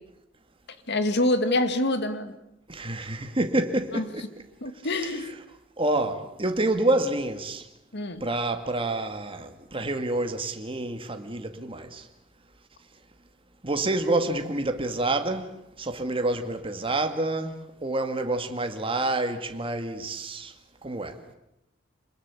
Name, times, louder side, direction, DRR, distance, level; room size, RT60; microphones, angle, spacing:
voice 1, 0.9-2.4 3.9-4.1 4.6-5.3 7.9-8.2, left 1 dB, 60° left, 2.1 m, -26 dB
voice 2, 2.7-4.3 5.8-7.7 8.2-12.1 13.6-15.5 15.8-20.5 20.8-21.2, right 2 dB, 30° right, 2.1 m, -28 dB
27.0 x 21.0 x 8.4 m
head